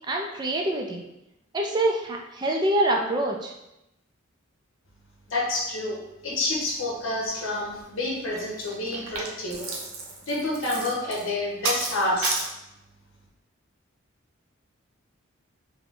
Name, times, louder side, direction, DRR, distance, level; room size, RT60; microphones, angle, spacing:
voice 1, 0.1-1.0 1.5-3.5, right 1 dB, 20° right, 1 dB, 0.4 m, -25 dB
voice 2, 5.3-6.0 6.2-9.7 10.3-12.4, left 2 dB, 70° left, -3 dB, 1.2 m, -28 dB
sound 1, 7.5-7.8 8.2-12.5, right 4 dB, 85° right, 0.8 m, -32 dB
4.8 x 2.2 x 3.7 m, 0.90 s
head